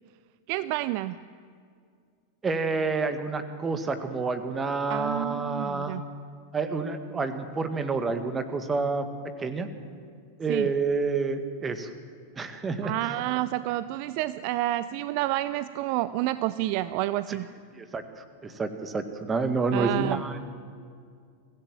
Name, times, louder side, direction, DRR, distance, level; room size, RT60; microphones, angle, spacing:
voice 1, 0.5-1.2 4.9-6.0 10.5-10.7 12.8-17.5 19.7-20.2, right 16 dB, 45° right, 15 dB, 0.5 m, -29 dB
voice 2, 2.4-6.0 6.5-9.1 9.4-9.7 10.4-11.9 12.3-12.9 17.3-17.4 17.7-20.4, right 4 dB, 20° right, 9 dB, 1.8 m, -29 dB
24.5 x 16.5 x 7.7 m, 2.2 s
figure-of-eight pair, 90°, 0 cm